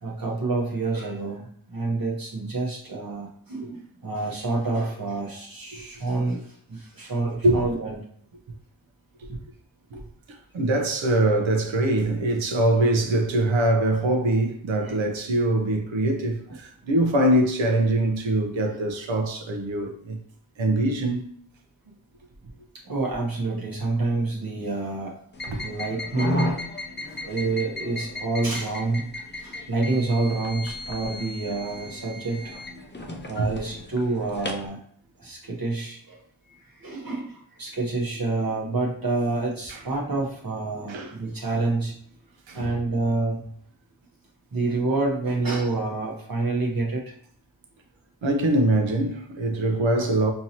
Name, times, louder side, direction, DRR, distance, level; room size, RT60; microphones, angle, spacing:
voice 1, 0.0-8.0 14.9-15.0 22.8-25.1 25.6-26.6 27.3-29.1 29.4-32.5 33.3-34.8 35.2-36.2 36.7-41.9 42.5-43.4 44.5-47.1, right 3 dB, 45° right, 1.1 m, -28 dB
voice 2, 10.3-20.2 20.6-21.4 25.5-25.6 33.4-33.5 39.7-39.8 40.9-41.1 42.5-42.8 48.2-50.3, right 1 dB, 65° right, 0.9 m, -23 dB
sound 1, 25.3-34.7, left 1 dB, 25° left, 0.6 m, -35 dB
4.5 x 2.8 x 2.9 m
cardioid pair, 70°, 48 cm